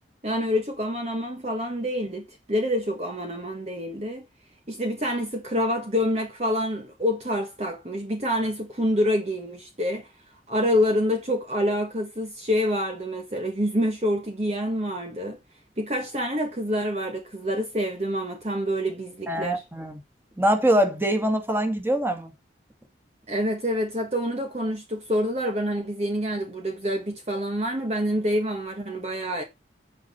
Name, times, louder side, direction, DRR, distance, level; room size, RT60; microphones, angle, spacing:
voice 1, 0.2-4.2 4.7-10.1 10.5-15.4 15.8-19.6 23.3-29.4, equal, 35° right, 1.4 m, -27 dB
voice 2, 19.3-20.0 20.4-22.3, right 1 dB, 10° right, 2.1 m, -23 dB
9.4 x 9.1 x 4.2 m
head